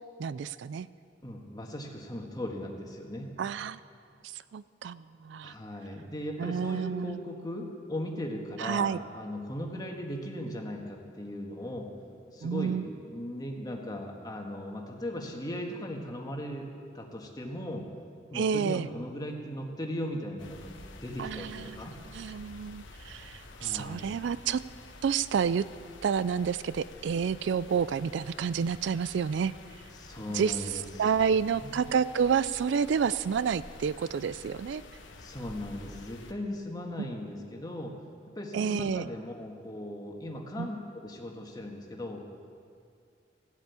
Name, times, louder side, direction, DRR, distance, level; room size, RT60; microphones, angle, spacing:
voice 1, 0.2-0.9 3.4-3.8 4.5-5.5 6.4-7.2 8.6-9.0 12.4-12.8 18.3-18.9 21.2-21.8 22.1-24.6 25.0-25.6 26.0-29.5 30.3-30.6 31.0-34.8 38.5-39.1 40.6-40.7, right 6 dB, 65° right, 16 dB, 0.3 m, -29 dB
voice 2, 1.2-3.3 5.4-11.9 12.3-16.7 16.9-17.9 18.3-20.7 21.0-21.9 23.5-24.4 29.9-31.9 35.2-38.0 38.3-42.2, left 1 dB, 20° left, 1 dB, 1.6 m, -38 dB
sound 1, 20.4-36.3, left 2 dB, 75° left, 1.2 m, -49 dB
16.0 x 8.3 x 8.3 m, 2.3 s
head